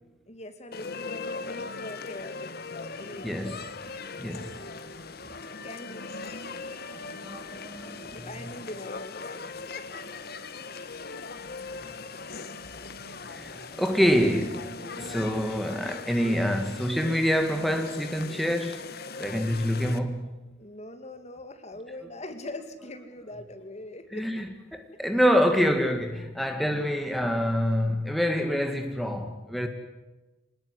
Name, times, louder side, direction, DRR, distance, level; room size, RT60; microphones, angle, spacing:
voice 1, 0.3-3.6 5.3-6.1 8.1-10.0 15.0-15.2 20.6-24.4 26.5-26.7, left 1 dB, 35° left, 2.6 m, -42 dB
sound 1, 0.7-20.0, left 4 dB, 55° left, 1.5 m, -40 dB
voice 2, 3.2-3.6 4.2-4.6 7.0-8.3 13.2-18.9 19.2-20.2 24.1-29.7, equal, ahead, 1.9 m, -26 dB
26.5 x 19.5 x 9.9 m
head